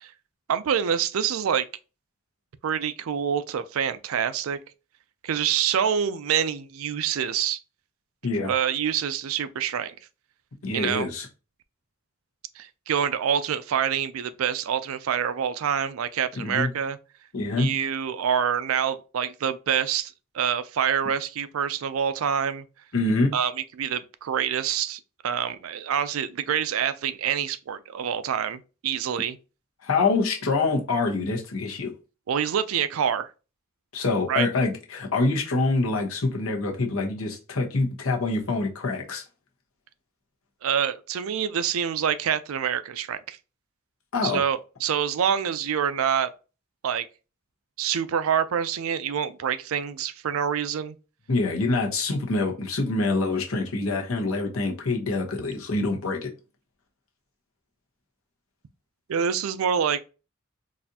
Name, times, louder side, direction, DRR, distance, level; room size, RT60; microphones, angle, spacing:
voice 1, 0.5-1.7 2.6-4.6 5.2-7.6 8.4-9.9 10.7-11.1 12.6-17.0 17.6-22.6 23.3-23.5 23.8-29.4 32.3-33.3 34.3-34.5 40.6-43.4 44.2-46.3 46.8-47.1 47.8-51.0 59.1-60.0, right 8 dB, 80° right, 0.4 m, -26 dB
voice 2, 10.6-11.3 16.4-16.7 17.3-17.7 22.9-23.3 29.8-31.9 33.9-39.2 44.1-44.4 51.3-56.3, left 3 dB, 85° left, 1.0 m, -25 dB
4.0 x 2.5 x 2.7 m
head